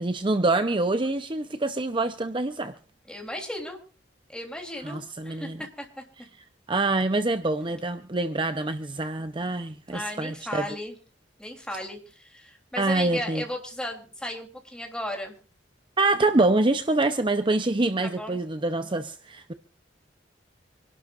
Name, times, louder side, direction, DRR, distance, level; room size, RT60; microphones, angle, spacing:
voice 1, 0.0-2.7 4.8-5.6 6.7-10.7 12.8-13.4 16.0-19.5, right 2 dB, 25° right, 0.7 m, -25 dB
voice 2, 3.1-3.8 4.3-6.0 9.9-11.0 11.4-15.3 18.0-18.4, left 1 dB, 5° left, 3.3 m, -35 dB
27.0 x 12.0 x 2.5 m
head